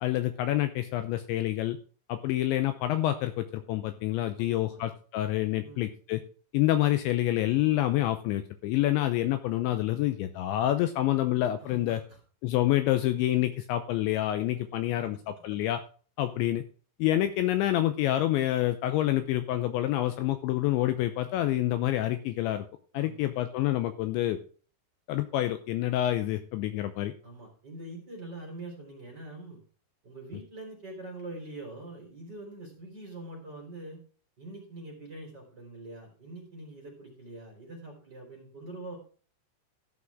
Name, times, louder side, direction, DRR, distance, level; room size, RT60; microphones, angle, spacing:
voice 1, 0.0-1.8 2.1-6.2 6.5-12.0 12.4-15.8 16.2-16.6 17.0-22.7 22.9-24.4 25.1-27.1, left 14 dB, 80° left, 9 dB, 2.8 m, -27 dB
voice 2, 4.4-4.8 5.6-5.9 11.6-12.2 14.5-14.7 15.1-15.2 15.5-15.6 16.2-16.4 22.9-23.3 27.2-29.6 30.0-34.0 34.4-39.0, right 2 dB, 25° right, 1 dB, 3.2 m, -44 dB
14.0 x 6.0 x 4.8 m, 0.40 s
omnidirectional pair, 5.8 m